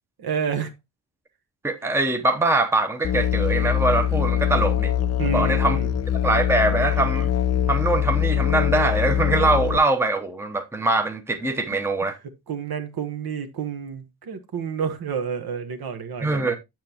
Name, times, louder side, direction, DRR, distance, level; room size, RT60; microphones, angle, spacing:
voice 1, 0.2-0.7 5.2-5.9 11.7-11.8 12.5-16.6, right 7 dB, 60° right, 1.2 m, -29 dB
voice 2, 1.6-4.9 5.3-5.8 6.2-7.3 7.7-12.2 16.2-16.6, right 2 dB, 5° right, 0.8 m, -23 dB
Musical instrument, 3.0-9.8, left 10 dB, 40° left, 0.4 m, -23 dB
7.5 x 7.4 x 2.9 m
wide cardioid pair, 135°, 41 cm